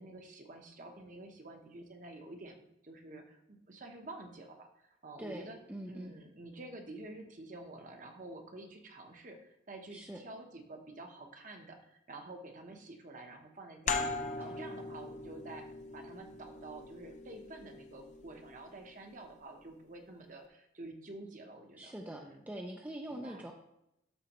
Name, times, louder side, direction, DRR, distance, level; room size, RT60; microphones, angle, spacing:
voice 1, 0.0-5.6 5.9-14.1 14.4-15.6 15.9-22.4 23.1-23.4, right 2 dB, 40° right, 4 dB, 0.9 m, -49 dB
voice 2, 5.2-6.1 9.9-10.2 21.8-23.5, right 1 dB, 10° right, 1 dB, 0.4 m, -43 dB
sound 1, 13.9-19.1, left 3 dB, 40° left, 0.6 m, -40 dB
12.5 x 4.4 x 3.0 m, 0.83 s
head